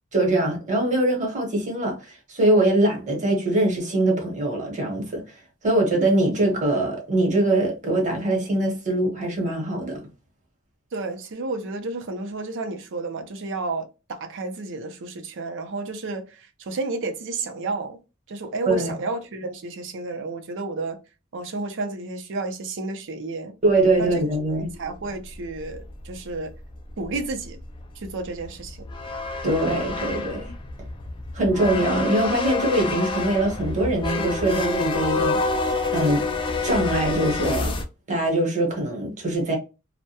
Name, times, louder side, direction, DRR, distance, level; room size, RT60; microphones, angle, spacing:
voice 1, 0.1-5.2 5.6-10.0 18.7-18.9 23.6-24.7 29.4-30.5 31.3-35.4 35.9-36.2 36.6-37.8 38.1-39.6, right 1 dB, 35° right, 1.0 m, -22 dB
voice 2, 10.9-18.0 18.3-21.0 21.3-23.6 24.0-24.2 24.8-26.5 27.0-27.6 28.0-28.8, right 3 dB, 60° right, 0.5 m, -31 dB
sound 1, 23.9-24.1 24.7-24.8 25.0-25.1 25.3-37.9, left 3 dB, 25° left, 0.3 m, -28 dB
2.2 x 2.1 x 2.7 m
head